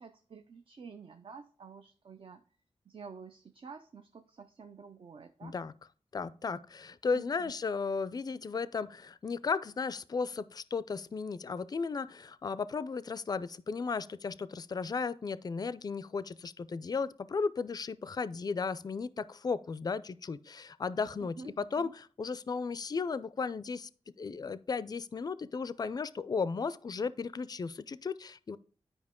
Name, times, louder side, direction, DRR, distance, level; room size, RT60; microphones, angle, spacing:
voice 1, 0.0-2.4 2.9-5.5 7.1-7.5 21.2-21.9, right 5 dB, 55° right, 0.5 m, -49 dB
voice 2, 5.4-5.7 6.1-23.9 24.2-28.6, left 5 dB, 40° left, 0.4 m, -35 dB
9.5 x 5.1 x 3.6 m
wide cardioid pair, 90°, 11 cm